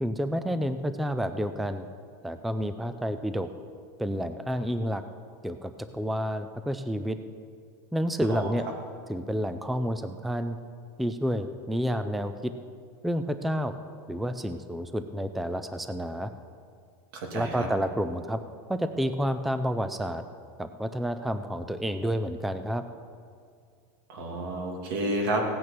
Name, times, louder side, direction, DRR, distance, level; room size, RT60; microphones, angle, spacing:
voice 1, 0.0-1.9 2.2-3.5 4.0-5.0 5.4-7.2 7.9-8.6 9.1-10.6 11.0-12.5 13.0-13.7 14.1-16.3 17.3-18.4 18.7-20.2 20.6-22.8, equal, ahead, 10 dB, 0.3 m, -29 dB
voice 2, 17.1-17.7 24.1-25.4, right 1 dB, 85° right, 2 dB, 2.7 m, -30 dB
16.5 x 9.4 x 6.0 m, 2.2 s
supercardioid pair, 170°, 11 cm